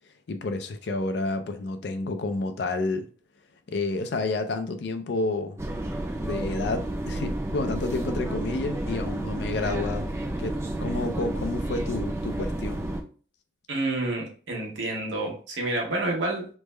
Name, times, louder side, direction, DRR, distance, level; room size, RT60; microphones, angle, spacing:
voice 1, 0.3-3.1 3.7-5.6 6.2-10.1 10.4-12.9, left 2 dB, 60° left, 0.4 m, -30 dB
sound 1, 5.6-13.0, right 1 dB, 15° right, 0.3 m, -31 dB
voice 2, 13.7-16.5, right 2 dB, 80° right, 1.0 m, -29 dB
3.3 x 2.1 x 3.2 m
head